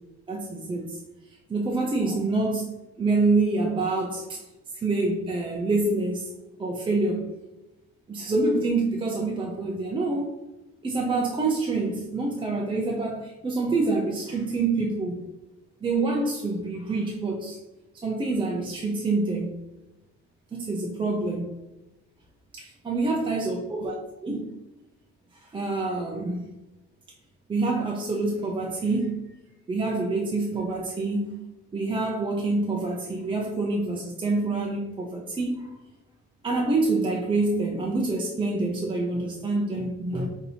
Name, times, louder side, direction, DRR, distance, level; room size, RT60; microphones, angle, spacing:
voice 1, 0.3-1.0 1.3-2.7 3.0-4.5 4.7-6.3 6.6-7.3 8.1-10.3 10.8-15.2 15.8-17.6 18.0-19.6 20.5-21.5 22.5-24.5 25.3-26.4 27.5-29.2 29.7-31.4 31.7-35.7 36.4-40.3, right 3 dB, 20° right, -1 dB, 0.4 m, -26 dB
5.6 x 2.7 x 2.7 m, 1.0 s
cardioid pair, 160°, 29 cm